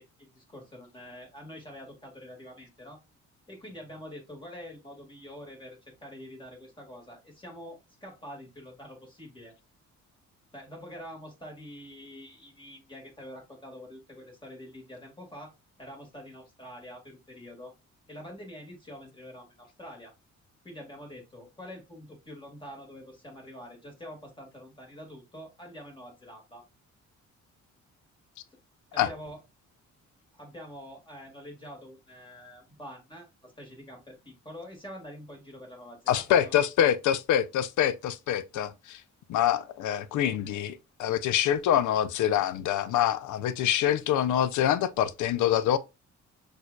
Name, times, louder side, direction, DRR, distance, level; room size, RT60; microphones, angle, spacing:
voice 1, 0.0-3.0 3.5-9.5 10.5-15.5 15.8-17.7 18.1-20.1 20.6-26.7 28.9-29.4 30.3-36.6, equal, 15° left, 2.0 m, -46 dB
voice 2, 36.1-39.0 39.3-45.8, left 10 dB, 75° left, 0.5 m, -25 dB
6.1 x 2.7 x 2.3 m
cardioid pair, 90°, 30 cm